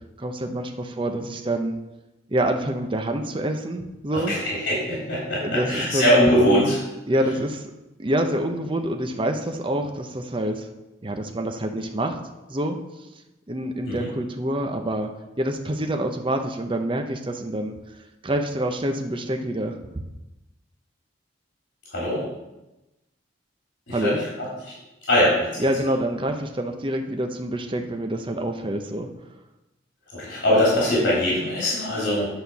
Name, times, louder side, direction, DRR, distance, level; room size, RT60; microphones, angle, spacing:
voice 1, 0.2-1.8 2.3-4.3 5.4-6.2 7.1-7.7 8.0-10.7 11.0-12.2 12.5-12.8 13.5-15.1 15.4-17.7 18.2-19.8 23.9-24.2 25.6-29.1, right 1 dB, 25° right, 4 dB, 0.7 m, -26 dB
voice 2, 4.1-6.8 13.9-14.1 21.9-22.2 23.9-24.7 25.1-25.5 30.1-32.3, equal, 65° left, -7 dB, 3.4 m, -22 dB
9.5 x 4.4 x 6.8 m, 1.0 s
head